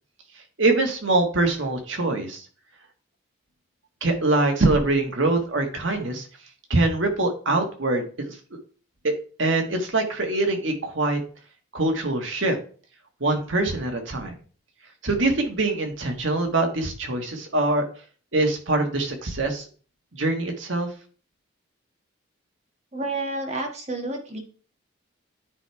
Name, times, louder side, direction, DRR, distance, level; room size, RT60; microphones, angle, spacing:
voice 1, 0.6-2.4 4.0-6.3 6.7-8.4 9.0-9.1 9.4-11.2 11.7-12.6 13.2-14.4 15.0-17.8 18.3-19.7 20.1-20.9, right 2 dB, 70° right, 4 dB, 1.5 m, -23 dB
voice 2, 22.9-24.4, right 2 dB, 35° right, 2 dB, 1.5 m, -30 dB
9.6 x 3.4 x 4.6 m, 0.39 s
head